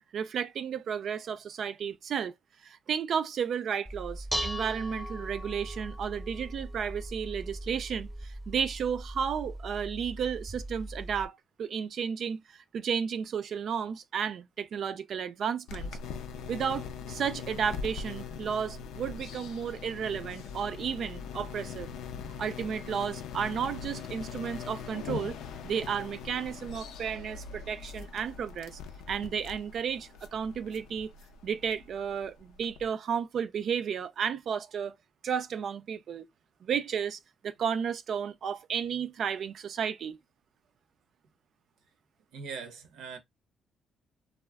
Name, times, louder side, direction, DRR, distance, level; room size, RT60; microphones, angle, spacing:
voice 1, 0.0-2.3 2.6-16.0 16.5-21.9 22.4-25.4 25.6-28.8 29.1-31.1 31.4-34.9 35.2-36.2 36.6-40.2, right 7 dB, 60° right, 0.3 m, -33 dB
Dishes pots and pans, 3.9-11.3, right 1 dB, 5° right, 0.7 m, -39 dB
sound 1, 15.7-32.9, left 6 dB, 90° left, 0.4 m, -41 dB
voice 2, 42.3-43.2, right 5 dB, 85° right, 0.7 m, -41 dB
2.3 x 2.0 x 3.3 m
cardioid pair, 90°, 0 cm